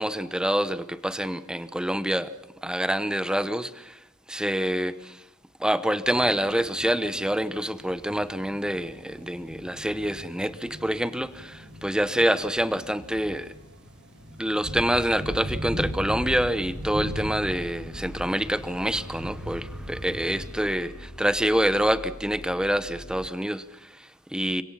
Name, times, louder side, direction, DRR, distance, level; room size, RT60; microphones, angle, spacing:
voice 1, 0.0-2.3 2.6-4.0 4.3-5.2 5.6-13.5 14.4-24.6, equal, 5° right, 0.9 m, -26 dB
sound 1, 6.0-20.5, equal, 55° right, 5.5 m, -39 dB
sound 2, 15.5-23.3, left 1 dB, 35° left, 4.1 m, -44 dB
29.5 x 25.0 x 5.7 m
head